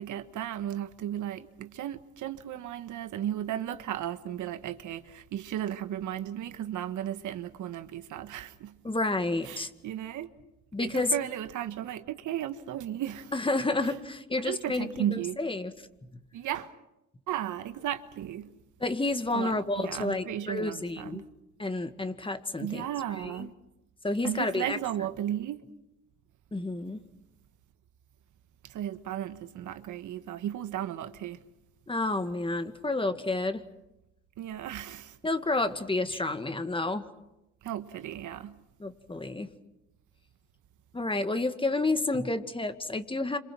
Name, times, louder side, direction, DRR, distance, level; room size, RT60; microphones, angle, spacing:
voice 1, 0.0-8.8 9.4-10.3 10.8-13.3 13.8-13.9 14.4-15.4 16.3-16.7 17.3-18.5 19.3-21.3 22.6-23.5 24.2-25.6 28.6-31.4 34.4-35.2 36.1-36.2 37.6-38.6, right 11 dB, 80° right, 1.4 m, -35 dB
voice 2, 8.8-9.7 10.7-11.1 13.3-15.7 18.8-21.2 21.6-22.9 23.2-23.5 24.0-24.8 26.5-27.0 31.9-33.6 35.2-37.0 38.8-39.5 40.9-43.4, left 2 dB, 15° left, 2.0 m, -30 dB
28.0 x 26.5 x 6.2 m
cardioid pair, 90°, 30 cm